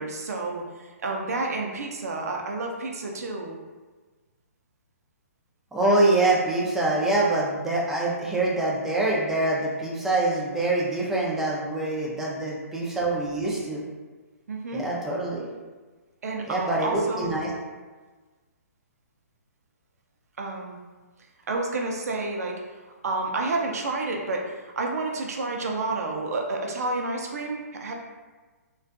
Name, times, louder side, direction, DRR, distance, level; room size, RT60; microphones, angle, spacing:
voice 1, 0.0-3.6 14.5-14.9 16.2-17.3 20.4-20.8 21.5-22.6 23.0-27.9, right 3 dB, 70° right, 1 dB, 0.4 m, -30 dB
voice 2, 5.7-13.8 14.7-15.5 16.5-17.5, right 2 dB, 5° right, -5 dB, 0.4 m, -25 dB
2.4 x 2.2 x 2.4 m, 1.3 s
hypercardioid pair, 140°, 8 cm